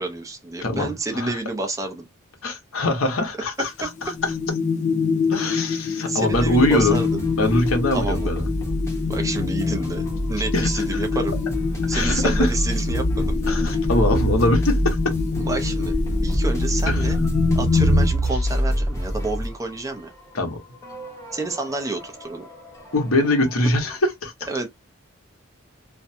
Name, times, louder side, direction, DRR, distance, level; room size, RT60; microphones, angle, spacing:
voice 1, 0.0-2.0 3.8-3.9 6.1-7.2 7.9-8.3 9.1-11.4 11.9-13.8 15.4-15.9 16.2-17.2 17.6-20.1 21.3-22.5 24.5-24.7, right 3 dB, 15° right, 0.5 m, -29 dB
voice 2, 0.6-1.4 2.4-3.9 4.2-4.3 5.3-7.0 7.4-8.4 10.5-10.7 11.9-12.5 13.5-15.1 16.9-17.0 20.3-20.6 22.9-24.5, left 1 dB, 85° left, 1.0 m, -22 dB
sound 1, 3.9-18.1, left 4 dB, 35° left, 0.4 m, -25 dB
sound 2, 6.3-24.0, equal, 15° left, 0.8 m, -31 dB
sound 3, 11.9-15.2 15.8-19.2, equal, 85° right, 0.8 m, -25 dB
2.5 x 2.2 x 2.6 m
head